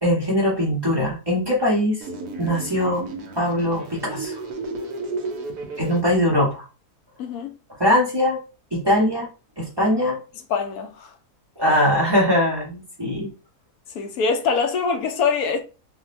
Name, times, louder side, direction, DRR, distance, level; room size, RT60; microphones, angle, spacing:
voice 1, 0.0-2.0 2.4-3.1 3.3-4.3 5.8-6.7 7.8-8.4 8.7-9.3 9.6-10.2 11.6-13.3, left 1 dB, 25° right, 0.6 m, -21 dB
sound 1, 2.0-6.0, right 3 dB, 75° right, 1.2 m, -33 dB
voice 2, 7.2-7.5 10.5-11.1 13.9-15.6, left 5 dB, 70° left, 1.0 m, -23 dB
3.7 x 2.2 x 2.4 m
omnidirectional pair, 1.8 m